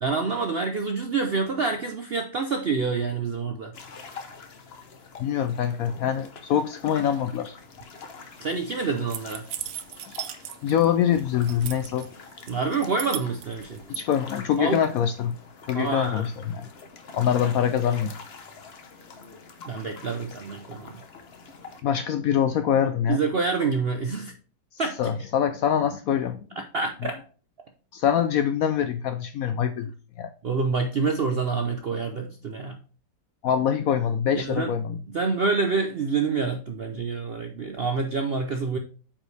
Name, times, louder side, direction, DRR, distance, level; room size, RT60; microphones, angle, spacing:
voice 1, 0.0-3.7 8.4-9.5 12.5-13.8 14.6-14.8 15.7-16.3 19.7-21.0 23.1-24.3 24.8-25.1 26.6-27.2 30.4-32.8 34.3-34.7 35.1-38.8, right 4 dB, 60° right, 0.6 m, -27 dB
sound 1, 3.7-21.8, left 4 dB, 45° left, 0.9 m, -45 dB
voice 2, 5.2-7.6 10.6-12.1 13.9-15.4 15.7-16.7 17.1-18.2 21.8-23.2 25.0-26.4 27.9-29.9 30.2-30.3 33.4-35.0, left 9 dB, 70° left, 0.8 m, -24 dB
sound 2, 9.1-10.9 11.1-12.1 12.5-14.0, right 11 dB, 80° right, 1.4 m, -36 dB
8.6 x 5.2 x 3.3 m
omnidirectional pair, 1.9 m